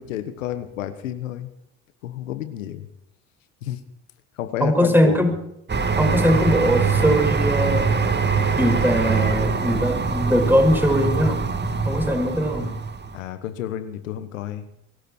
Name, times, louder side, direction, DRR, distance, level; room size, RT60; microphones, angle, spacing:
voice 1, 0.0-1.5 2.0-2.9 3.6-3.8 4.4-5.3 12.6-12.8 13.1-14.7, left 11 dB, 90° left, 10 dB, 1.4 m, -30 dB
voice 2, 4.6-5.3 6.0-7.9 8.6-11.4 11.9-12.7, equal, 5° right, 5 dB, 5.8 m, -20 dB
sound 1, 5.7-13.2, right 5 dB, 25° right, 2.4 m, -23 dB
24.0 x 13.5 x 4.5 m, 0.79 s
hypercardioid pair, 65°, 38 cm